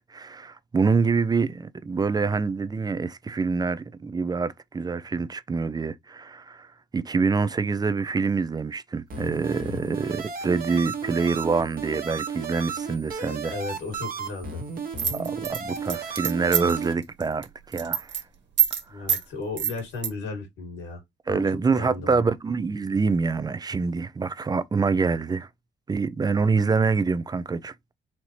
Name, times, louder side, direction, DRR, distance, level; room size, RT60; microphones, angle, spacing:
voice 1, 0.1-6.7 6.9-13.5 15.1-18.1 18.9-19.1 21.3-25.5 25.9-27.7, right 4 dB, 20° right, 0.4 m, -26 dB
sound 1, 9.1-16.9, right 5 dB, 45° right, 1.1 m, -34 dB
voice 2, 13.5-14.6 18.9-21.0 21.3-21.5 21.7-22.2, left 3 dB, 85° left, 2.3 m, -35 dB
sound 2, 15.0-16.8 17.2-17.4 17.7-18.2 18.6-18.8 19.1-19.2 19.6-20.1, right 9 dB, 65° right, 1.4 m, -24 dB
4.3 x 2.7 x 3.1 m
cardioid pair, 90°, 20 cm